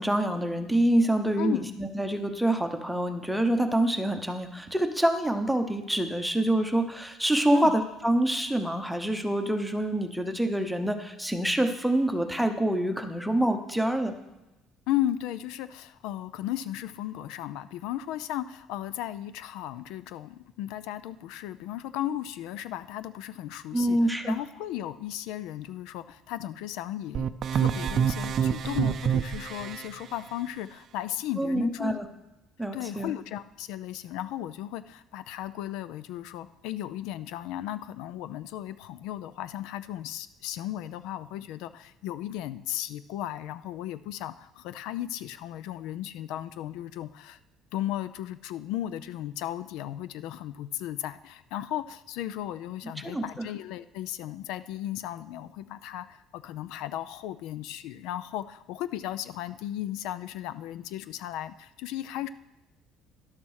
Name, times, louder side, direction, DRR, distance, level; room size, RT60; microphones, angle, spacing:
voice 1, 0.0-14.2 23.7-24.4 31.4-32.1 32.6-33.1 53.0-53.5, right 1 dB, ahead, 6 dB, 0.8 m, -26 dB
voice 2, 1.4-1.7 7.5-7.7 14.9-32.0 32.7-47.4 47.7-62.3, left 12 dB, 80° left, 15 dB, 0.4 m, -35 dB
sound 1, 27.1-29.9, right 8 dB, 40° right, 0.5 m, -27 dB
11.5 x 7.3 x 6.4 m, 0.98 s
cardioid pair, 165°, 0 cm